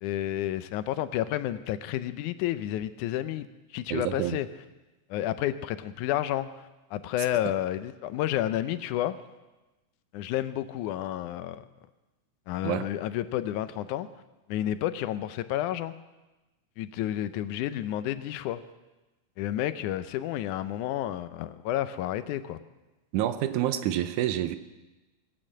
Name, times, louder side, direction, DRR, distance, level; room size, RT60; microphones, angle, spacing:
voice 1, 0.0-3.5 3.7-4.5 5.1-6.5 6.9-9.2 10.1-11.7 12.5-14.1 14.5-16.0 16.8-18.6 19.4-22.6, left 12 dB, 85° left, 13 dB, 2.1 m, -30 dB
voice 2, 3.9-4.4 12.6-12.8 23.1-24.6, right 12 dB, 85° right, 12 dB, 2.2 m, -28 dB
19.5 x 8.7 x 7.5 m, 1.1 s
omnidirectional pair, 3.5 m